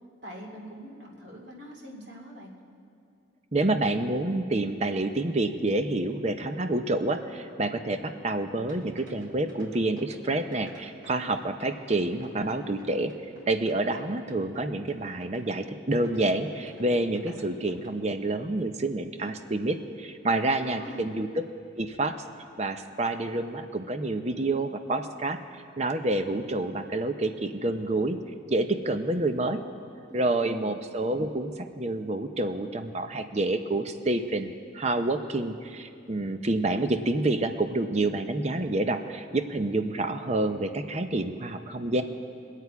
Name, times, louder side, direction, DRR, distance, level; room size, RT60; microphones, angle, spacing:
voice 1, 0.2-2.5 20.6-21.1 30.1-30.8, equal, 65° right, -1 dB, 2.2 m, -43 dB
voice 2, 3.5-13.1 13.5-21.5 21.8-22.2 22.6-25.4 25.8-28.2 28.5-29.6 30.1-42.0, right 2 dB, 35° right, 8 dB, 0.6 m, -28 dB
sound 1, 8.7-11.4 11.6-14.0 14.3-14.6 14.9-15.0 15.2-15.6 15.9-16.2 16.5-16.8 17.1-17.9, equal, 85° right, 2.4 m, -51 dB
23.0 x 8.3 x 4.7 m, 2.6 s
head